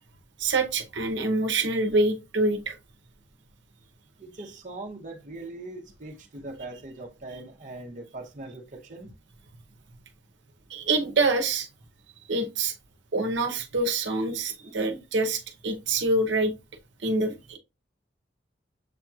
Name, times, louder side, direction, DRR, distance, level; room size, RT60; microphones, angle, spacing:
voice 1, 0.4-2.8 10.7-11.7 12.3-12.7 13.1-16.5 17.0-17.6, right 2 dB, 75° right, 0.8 m, -26 dB
voice 2, 4.2-9.1, right 2 dB, 45° right, 0.7 m, -41 dB
6.8 x 2.8 x 2.4 m
head